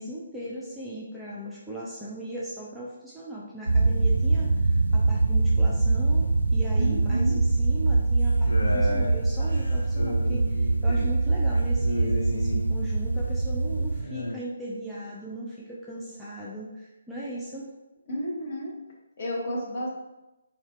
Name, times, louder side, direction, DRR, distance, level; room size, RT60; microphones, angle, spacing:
voice 1, 0.0-17.7, right 1 dB, 5° right, -8 dB, 0.4 m, -38 dB
sound 1, 3.7-14.0, right 3 dB, 75° right, 0.3 m, -23 dB
voice 2, 6.8-7.4 18.1-18.7 19.2-19.9, equal, 45° left, -3 dB, 0.7 m, -31 dB
sound 2, 8.2-13.1 13.8-14.4, left 1 dB, 75° left, 0.4 m, -34 dB
2.7 x 2.1 x 3.0 m, 0.99 s
figure-of-eight pair, 140°, 0 cm